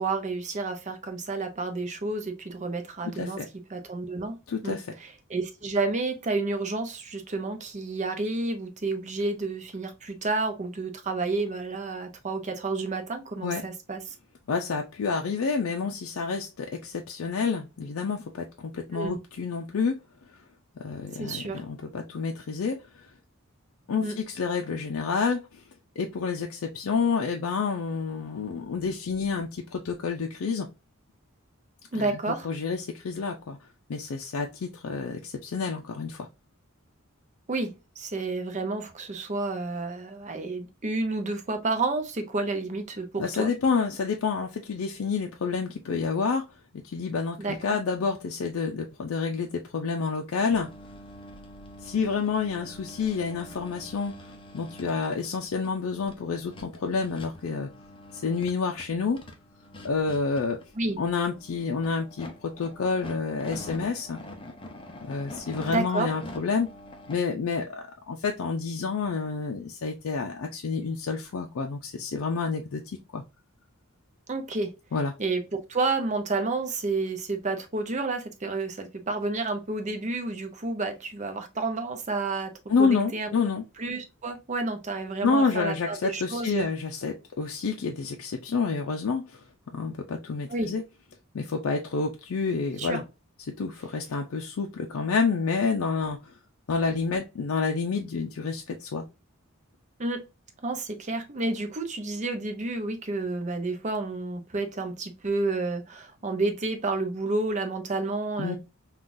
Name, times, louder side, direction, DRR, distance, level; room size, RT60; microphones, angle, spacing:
voice 1, 0.0-3.4 3.7-4.4 4.6-14.1 18.9-19.2 21.2-21.6 24.0-24.1 31.9-32.5 37.5-43.5 47.4-47.8 60.8-61.0 65.7-66.1 74.3-74.7 75.2-82.5 82.8-83.3 83.8-86.7 90.5-90.7 92.8-93.0 100.0-100.3 100.6-108.6, right 3 dB, 35° right, 0.6 m, -30 dB
voice 2, 3.0-3.5 4.5-4.9 13.4-13.6 14.5-20.0 20.8-23.1 23.9-25.6 26.0-30.7 31.9-32.1 32.4-33.6 33.9-36.3 43.2-46.5 46.8-50.7 51.8-54.1 54.5-57.7 58.1-59.2 59.8-60.6 61.0-64.2 65.0-66.7 67.1-72.8 73.1-73.2 74.9-75.1 82.7-83.6 85.2-89.4 89.7-90.8 91.3-93.0 93.6-96.4 96.7-99.0 108.4-108.6, left 5 dB, 75° left, 0.4 m, -29 dB
sound 1, 50.5-67.2, left 1 dB, 25° left, 0.6 m, -45 dB
3.7 x 2.4 x 2.5 m
head